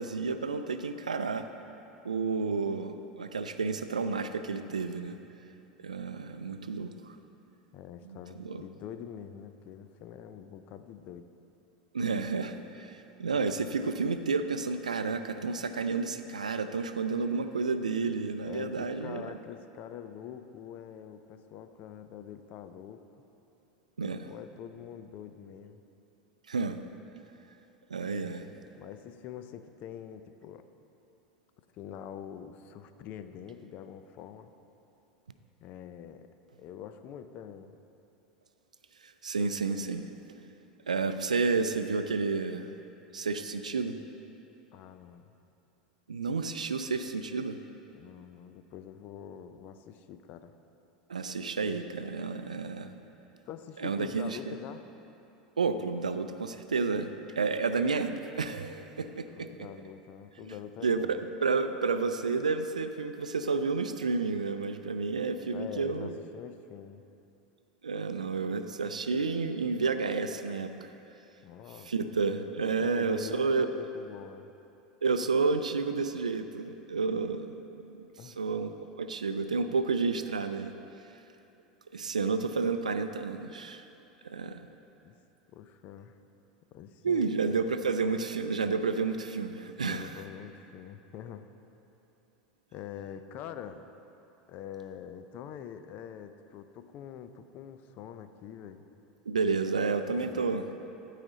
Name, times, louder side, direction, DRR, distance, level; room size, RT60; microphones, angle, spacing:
voice 1, 0.0-1.5 2.0-5.2 5.8-6.9 8.0-8.6 11.9-19.3 24.0-24.3 26.5-26.8 27.9-28.5 39.0-40.1 40.9-42.7 43.1-44.0 46.1-47.6 51.1-52.9 53.8-54.5 55.6-59.7 60.4-60.5 60.8-66.1 67.8-70.7 71.9-73.7 75.0-77.5 77.9-80.7 81.9-83.9 84.2-84.6 87.0-90.2 99.3-100.7, right 4 dB, 90° right, 9 dB, 0.4 m, -31 dB
voice 2, 7.7-11.3 18.4-23.0 24.2-25.8 28.7-30.7 31.7-34.5 35.6-36.3 36.6-37.8 44.7-45.3 47.9-50.5 53.4-54.9 59.4-61.2 65.5-67.0 71.4-71.9 72.8-74.5 78.2-78.4 85.0-85.2 85.5-86.2 86.7-87.4 89.8-91.5 92.7-93.8 94.5-98.9 100.0-100.5, left 9 dB, 50° left, 10 dB, 0.5 m, -45 dB
14.5 x 4.9 x 4.0 m, 2.9 s
hypercardioid pair, 85°, 4 cm